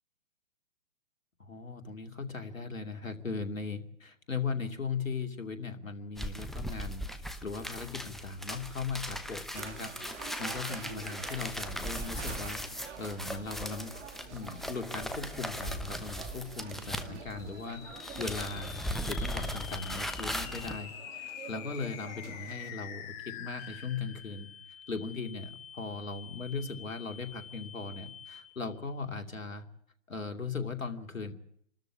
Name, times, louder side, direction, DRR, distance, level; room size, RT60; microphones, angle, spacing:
voice 1, 1.4-7.0 7.4-12.6 13.0-14.0 14.3-17.8 18.2-18.8 19.1-24.5 24.9-29.6 30.1-31.3, left 4 dB, 90° left, 6 dB, 2.7 m, -38 dB
sound 1, 6.2-17.6 17.9-20.8, equal, ahead, 0.9 m, -38 dB
sound 2, 9.5-22.7, right 7 dB, 60° right, 2.5 m, -48 dB
sound 3, 17.3-28.8, left 9 dB, 30° left, 2.0 m, -46 dB
27.0 x 13.0 x 8.5 m, 0.70 s
figure-of-eight pair, 125°, 39 cm